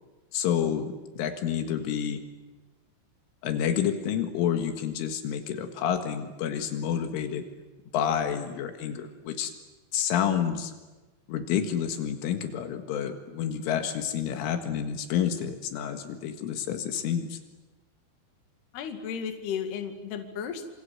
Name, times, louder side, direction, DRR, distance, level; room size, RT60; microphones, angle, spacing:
voice 1, 0.3-2.2 3.4-7.4 7.9-9.5 9.9-10.7 11.3-17.4, left 9 dB, 85° left, 7 dB, 4.2 m, -29 dB
voice 2, 18.7-20.7, left 7 dB, 60° left, 6 dB, 4.0 m, -34 dB
27.5 x 27.5 x 7.9 m, 1.2 s
omnidirectional pair, 5.6 m